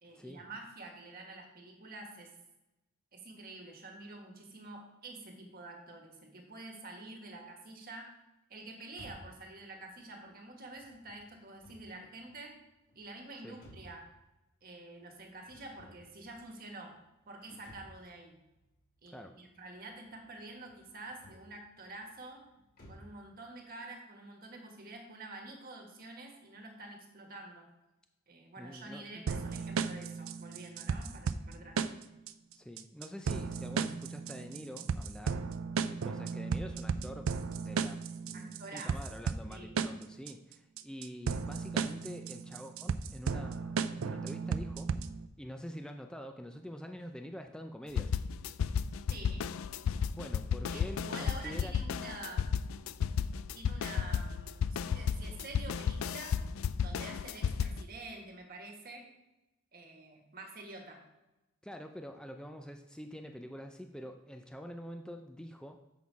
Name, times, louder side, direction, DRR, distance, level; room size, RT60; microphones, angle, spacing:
voice 1, 0.0-2.3 3.1-8.1 8.5-12.6 12.9-14.1 14.6-16.9 17.3-18.4 19.0-22.4 22.9-27.6 28.3-31.8 38.3-39.2 39.5-39.8 49.1-49.4 50.7-52.5 53.5-56.4 56.8-59.1 59.7-61.0, right 2 dB, 45° right, 2 dB, 1.6 m, -48 dB
sound 1, 8.9-23.2, equal, 50° left, 2.7 m, -59 dB
voice 2, 28.6-29.2 32.5-35.4 35.9-37.3 37.6-44.9 45.4-48.1 50.1-51.7 61.6-65.8, equal, 5° left, 5 dB, 0.4 m, -46 dB
sound 2, 29.3-45.3, right 5 dB, 80° right, 0.4 m, -35 dB
sound 3, 48.0-57.8, left 7 dB, 75° left, 0.3 m, -33 dB
7.1 x 6.2 x 4.7 m, 0.97 s
head